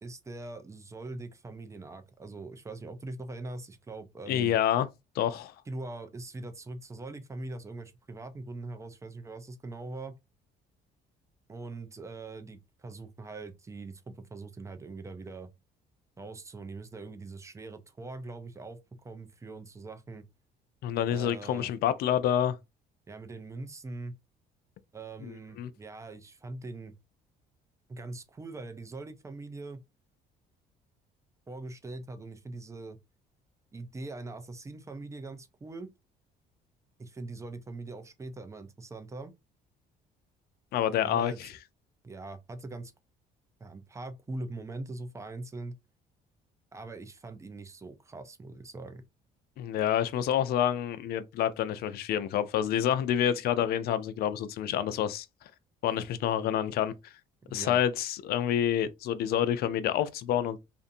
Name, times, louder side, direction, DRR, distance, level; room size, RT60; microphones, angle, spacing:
voice 1, 0.0-4.5 5.7-10.1 11.5-15.5 16.2-20.2 21.1-21.7 23.1-24.1 24.9-26.9 27.9-29.8 31.5-33.0 33.7-35.9 37.0-39.3 41.0-41.4 42.0-42.9 43.6-45.7 46.7-49.0 57.5-57.8, right 2 dB, 15° right, 0.5 m, -42 dB
voice 2, 4.3-4.9 5.2-5.5 20.8-22.6 25.2-25.7 40.7-41.5 49.6-55.3 55.8-56.9 57.5-60.6, left 10 dB, 65° left, 0.4 m, -28 dB
2.5 x 2.5 x 2.5 m
cardioid pair, 110°, 17 cm